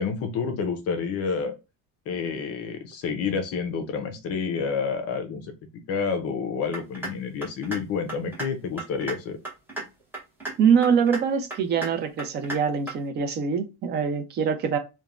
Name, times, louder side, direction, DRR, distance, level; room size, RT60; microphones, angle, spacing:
voice 1, 0.0-1.5 2.1-5.5 5.7-9.4, left 5 dB, 45° left, 0.5 m, -29 dB
sound 1, 6.7-7.1 7.4-7.8 8.1-8.5 8.8-9.1 9.4-9.8 10.1-10.5 10.8-11.2 11.5-11.9 12.2-12.6 12.9-13.0, right 2 dB, 5° right, 0.8 m, -33 dB
voice 2, 10.6-14.8, right 6 dB, 30° right, 0.4 m, -23 dB
3.0 x 2.2 x 2.3 m
cardioid pair, 155°, 35 cm